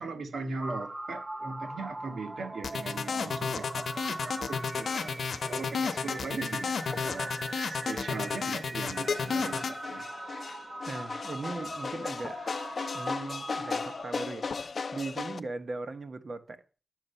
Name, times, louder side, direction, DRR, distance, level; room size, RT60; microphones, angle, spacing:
voice 1, 0.0-7.3 7.7-10.1, right 3 dB, 85° right, 1.6 m, -39 dB
sound 1, 0.6-14.0, right 2 dB, 30° right, 0.8 m, -41 dB
sound 2, 2.6-9.7, left 5 dB, 75° left, 0.9 m, -31 dB
sound 3, 4.8-15.4, left 4 dB, 50° left, 0.5 m, -39 dB
voice 2, 10.9-12.4 12.9-16.6, right 3 dB, 50° right, 1.2 m, -39 dB
10.5 x 7.6 x 5.6 m
wide cardioid pair, 130°, 0 cm